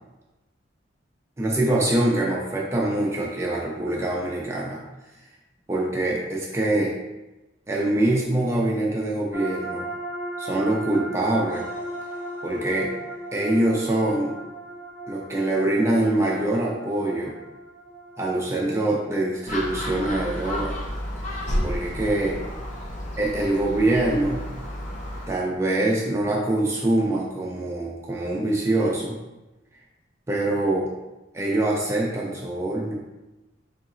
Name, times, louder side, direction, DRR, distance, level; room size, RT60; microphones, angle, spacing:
voice 1, 1.4-4.8 5.7-6.9 7.7-9.9 10.4-11.6 12.4-12.9 13.3-14.3 15.1-17.3 18.2-20.8 21.2-22.4 23.2-24.5 25.3-29.2 30.3-30.9 31.3-33.0, right 1 dB, 15° right, -3 dB, 0.4 m, -24 dB
sound 1, 9.3-20.7, right 1 dB, 85° left, 1.1 m, -37 dB
Gull seagull, 19.5-25.3, left 1 dB, 40° left, 0.6 m, -31 dB
4.0 x 2.8 x 2.5 m, 1.0 s
head